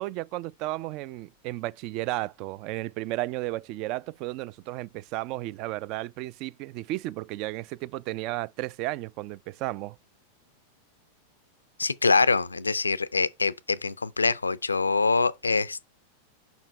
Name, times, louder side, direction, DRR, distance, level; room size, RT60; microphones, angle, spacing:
voice 1, 0.0-10.0, right 17 dB, 40° right, 0.3 m, -33 dB
voice 2, 11.8-15.9, left 4 dB, 80° left, 0.3 m, -24 dB
5.7 x 4.4 x 4.7 m
figure-of-eight pair, 90°, 0 cm